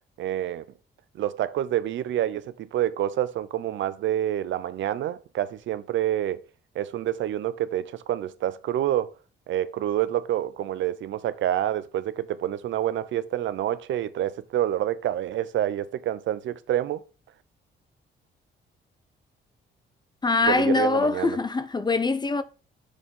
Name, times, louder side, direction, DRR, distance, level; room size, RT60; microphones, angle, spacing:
voice 1, 0.2-0.6 1.2-6.4 6.7-9.1 9.5-17.0 20.4-21.4, right 12 dB, 70° right, 0.6 m, -27 dB
voice 2, 20.2-22.4, left 3 dB, 20° left, 0.7 m, -23 dB
6.5 x 3.8 x 5.3 m
cardioid pair, 90°, 20 cm